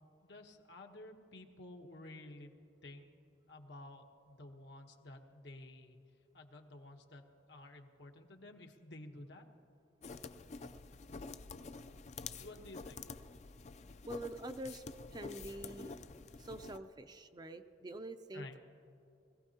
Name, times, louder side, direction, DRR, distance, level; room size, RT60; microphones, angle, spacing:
voice 1, 0.2-2.5 2.8-3.1 3.5-6.0 6.3-7.2 7.5-9.4 12.4-13.0 18.3-18.6, left 1 dB, 75° left, 3 dB, 1.1 m, -52 dB
sound 1, 10.0-16.8, left 4 dB, 40° left, 0.4 m, -48 dB
voice 2, 14.1-16.0 16.4-18.6, right 1 dB, 25° right, 9 dB, 0.4 m, -46 dB
21.5 x 15.5 x 2.8 m, 2.9 s
head